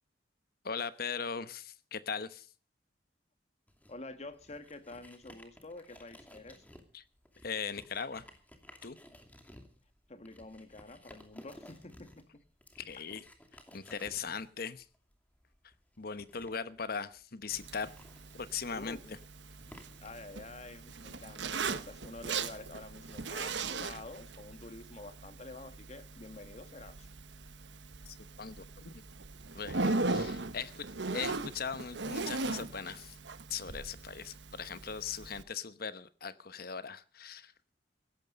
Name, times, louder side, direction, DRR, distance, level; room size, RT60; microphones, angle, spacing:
voice 1, 0.6-2.5 6.9-7.0 7.4-8.2 8.8-9.0 12.8-13.2 13.7-14.8 16.0-17.9 18.3-19.0 28.1-29.0 29.5-30.8 31.1-33.2 33.5-37.5, left 6 dB, 55° left, 14 dB, 1.0 m, -39 dB
sound 1, 3.7-21.8, left 1 dB, 10° left, 2.6 m, -57 dB
voice 2, 3.9-6.6 10.1-12.4 18.7-19.2 20.0-27.1, left 2 dB, 40° left, 10 dB, 1.5 m, -48 dB
Zipper (clothing), 17.5-35.4, right 3 dB, 85° right, 1.1 m, -39 dB
17.0 x 12.5 x 5.3 m, 0.39 s
head